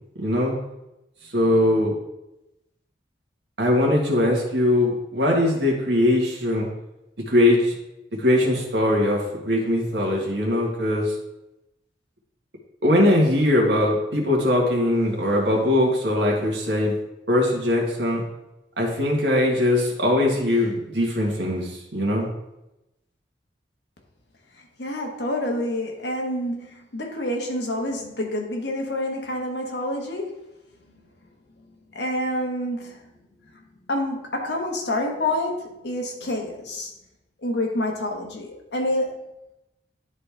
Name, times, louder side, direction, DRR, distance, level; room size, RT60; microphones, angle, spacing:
voice 1, 0.2-0.5 1.3-2.0 3.6-6.7 7.3-7.7 8.2-11.1 12.8-16.9 17.3-18.2 18.8-22.3, left 1 dB, 70° right, -2 dB, 1.6 m, -21 dB
voice 2, 24.8-30.4 31.9-33.0 33.5-33.6 33.9-36.9 37.4-39.2, left 1 dB, 70° left, 1 dB, 1.4 m, -28 dB
10.0 x 4.1 x 3.4 m, 0.92 s
head